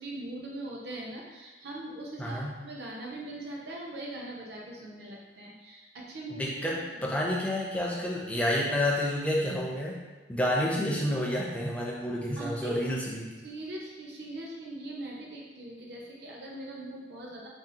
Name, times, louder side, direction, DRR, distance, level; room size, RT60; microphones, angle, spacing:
voice 1, 0.0-7.1 12.4-13.0 13.4-17.5, right 1 dB, 65° right, -3 dB, 0.6 m, -41 dB
voice 2, 2.2-2.5 6.3-10.0 10.3-13.3, left 1 dB, 5° left, -4 dB, 0.4 m, -29 dB
2.7 x 2.4 x 3.8 m, 1.3 s
head